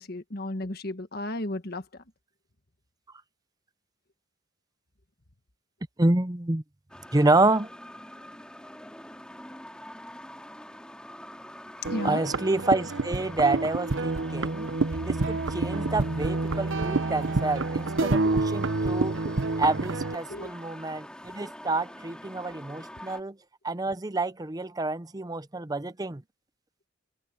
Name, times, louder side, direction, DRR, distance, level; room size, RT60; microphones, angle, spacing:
voice 1, 0.0-1.8 11.9-12.2 18.2-18.3 20.3-20.5, left 1 dB, 50° left, 1.7 m, -33 dB
voice 2, 6.0-6.6 7.1-7.7 12.0-14.7 15.0-19.2 19.6-23.4 23.6-26.2, right 2 dB, 20° right, 0.7 m, -28 dB
sound 1, 6.9-23.2, left 1 dB, 5° left, 3.3 m, -44 dB
sound 2, 11.8-20.2, right 3 dB, 75° right, 1.0 m, -28 dB
head